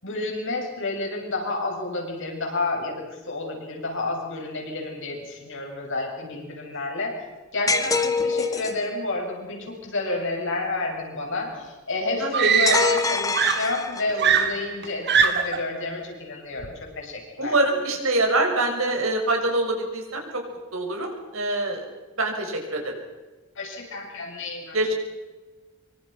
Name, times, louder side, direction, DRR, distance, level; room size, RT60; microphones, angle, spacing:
voice 1, 0.0-7.3 7.5-17.5 23.6-24.8, left 2 dB, 65° left, 1 dB, 7.8 m, -30 dB
sound 1, 7.7-8.9 12.7-14.2, left 4 dB, 15° left, 1.6 m, -25 dB
Screaming, 11.5-11.6 12.3-13.1 13.3-15.6 16.6-16.9, right 7 dB, 55° right, 2.4 m, -22 dB
voice 2, 12.2-12.7 17.4-20.4 20.7-21.8 22.2-22.9 24.7-24.9, right 2 dB, 70° right, 2 dB, 6.5 m, -25 dB
26.5 x 24.5 x 5.8 m, 1.2 s
head